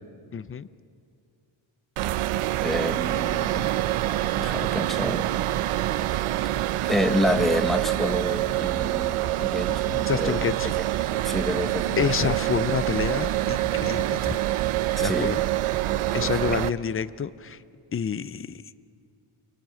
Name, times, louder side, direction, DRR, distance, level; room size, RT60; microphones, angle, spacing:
voice 1, 0.3-0.7 9.7-10.7 11.6-11.7 12.0-14.4 15.0-15.4 16.1-17.6 17.9-18.6, left 7 dB, 30° left, 15 dB, 0.4 m, -28 dB
sound 1, 2.0-16.7, right 14 dB, 85° right, 0.7 m, -26 dB
voice 2, 2.6-3.8 4.4-5.3 6.8-9.9 10.2-10.4 11.2-12.4 15.0-15.4 16.2-16.3, left 1 dB, ahead, 7 dB, 0.9 m, -28 dB
24.0 x 18.5 x 7.6 m, 2.5 s
wide cardioid pair, 145°, 50 cm